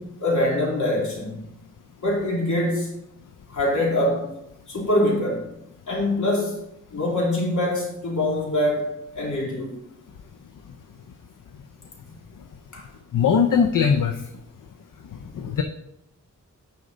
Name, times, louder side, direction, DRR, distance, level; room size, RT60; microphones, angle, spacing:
voice 1, 0.0-1.4 2.0-2.9 3.5-4.3 4.7-5.5 5.9-6.6 6.9-9.8 12.7-12.8, left 1 dB, 70° left, -4 dB, 2.8 m, -24 dB
voice 2, 13.1-14.2 15.3-15.6, left 6 dB, 85° left, 6 dB, 0.6 m, -20 dB
9.7 x 5.2 x 4.0 m, 0.83 s
wide cardioid pair, 125°, 31 cm